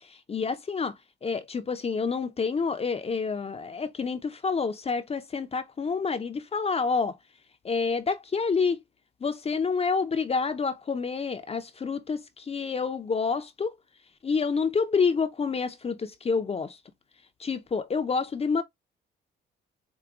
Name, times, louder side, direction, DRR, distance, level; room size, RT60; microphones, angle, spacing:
voice 1, 0.3-0.9 1.2-7.1 7.6-8.8 9.2-13.7 14.2-16.8 17.4-18.6, left 5 dB, 30° left, 0.6 m, -28 dB
4.9 x 2.2 x 3.5 m
cardioid pair, 90°, 20 cm